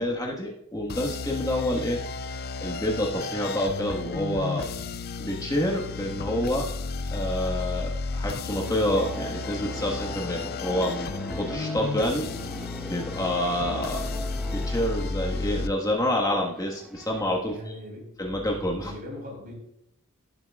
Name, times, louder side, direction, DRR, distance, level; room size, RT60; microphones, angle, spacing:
voice 1, 0.0-2.0 2.6-4.7 5.2-6.7 7.1-12.3 12.9-14.0 14.5-17.7 18.2-18.9, left 1 dB, 15° left, -2 dB, 1.5 m, -28 dB
sound 1, 0.9-15.7, left 4 dB, 45° left, 0.4 m, -33 dB
sound 2, 8.6-17.2, equal, 5° right, 0.6 m, -40 dB
voice 2, 17.5-18.1 18.8-19.5, left 1 dB, 45° right, 0 dB, 4.4 m, -40 dB
17.5 x 7.8 x 2.4 m, 0.82 s
head